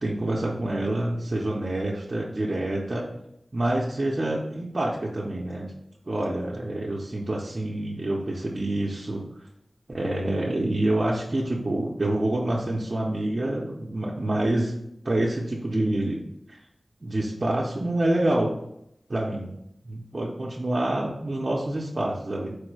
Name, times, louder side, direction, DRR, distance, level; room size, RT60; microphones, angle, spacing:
voice 1, 0.0-3.1 3.5-5.7 6.1-9.2 9.9-14.7 15.0-16.2 16.5-16.6 17.0-18.5 19.1-19.5 19.8-22.6, right 1 dB, 45° right, -4 dB, 0.5 m, -27 dB
4.6 x 2.1 x 4.6 m, 0.79 s
wide cardioid pair, 90°, 0 cm